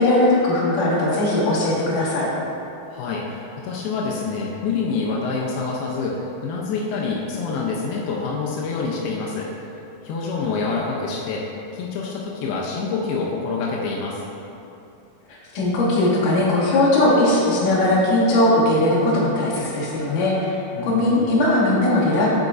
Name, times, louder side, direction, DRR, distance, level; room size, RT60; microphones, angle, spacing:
voice 1, 0.0-2.3 15.3-20.6 20.8-22.3, left 1 dB, 65° left, -7 dB, 2.9 m, -19 dB
voice 2, 2.9-9.7 10.0-11.4 11.7-14.2 20.8-21.3, left 4 dB, 85° left, -3 dB, 2.6 m, -27 dB
7.8 x 7.8 x 2.5 m, 2.7 s
omnidirectional pair, 4.4 m